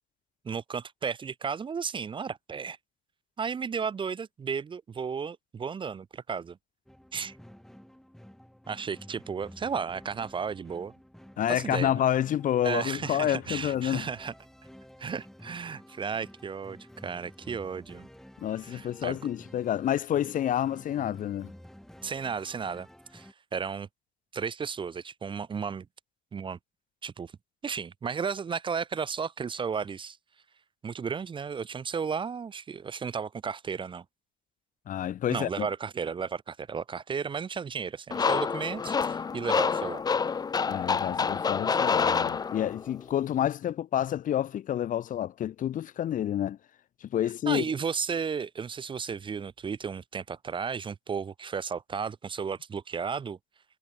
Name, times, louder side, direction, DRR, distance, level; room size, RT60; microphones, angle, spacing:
voice 1, 0.4-2.8 3.4-6.6 7.1-7.4 8.7-10.9 11.5-12.0 12.6-14.3 15.0-18.1 18.6-19.2 22.0-22.9 23.1-23.9 24.3-25.9 26.3-26.6 27.0-27.3 27.6-30.2 30.8-34.0 35.3-40.0 47.5-53.4, right 6 dB, 30° right, 0.7 m, -34 dB
sound 1, 6.9-23.3, equal, ahead, 4.5 m, -51 dB
voice 2, 11.4-14.1 18.4-21.5 34.9-35.7 40.7-46.6 47.0-47.7, left 11 dB, 50° left, 0.9 m, -29 dB
sound 2, 38.1-42.9, left 5 dB, 25° left, 0.5 m, -27 dB
cardioid pair, 110°, 17 cm